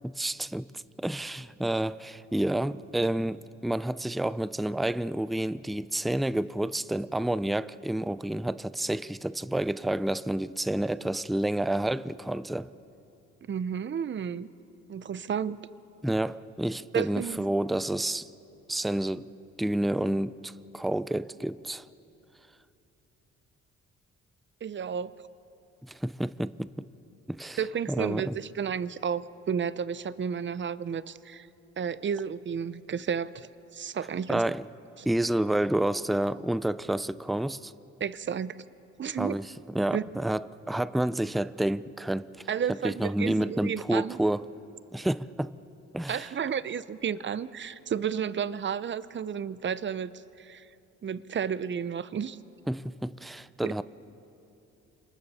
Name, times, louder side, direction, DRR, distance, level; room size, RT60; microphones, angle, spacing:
voice 1, 0.0-12.7 16.0-18.3 18.7-19.3 19.6-21.9 25.8-26.9 27.3-27.6 27.9-28.4 34.3-34.6 35.1-37.7 39.2-42.5 42.8-44.4 44.9-45.5 45.9-46.3 52.7-53.8, right 1 dB, ahead, 0.4 m, -29 dB
voice 2, 13.5-14.5 14.9-15.6 16.9-17.4 24.6-25.1 27.6-31.5 31.8-34.4 35.0-35.1 38.0-38.5 39.0-39.4 39.9-40.0 42.5-44.2 46.1-50.7 51.0-52.4 53.6-53.7, right 7 dB, 40° right, 0.7 m, -32 dB
29.5 x 26.5 x 4.3 m
cardioid pair, 90°, 30 cm